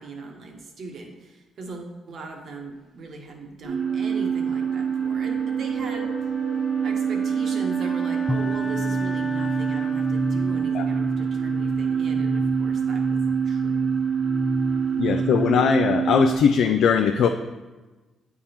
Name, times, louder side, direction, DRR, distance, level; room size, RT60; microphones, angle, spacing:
voice 1, 0.0-6.1 6.8-13.9, right 3 dB, 60° right, 2 dB, 1.2 m, -39 dB
sound 1, 3.6-16.4, right 7 dB, 75° right, 1.7 m, -26 dB
Wind instrument woodwind instrument, 3.8-11.8, left 1 dB, 50° left, 1.0 m, -38 dB
sound 2, 8.3-15.8, left 1 dB, 5° left, 0.4 m, -31 dB
voice 2, 15.0-17.3, left 7 dB, 70° left, 6 dB, 0.4 m, -20 dB
8.6 x 3.7 x 4.3 m, 1.2 s
cardioid pair, 90°, 0 cm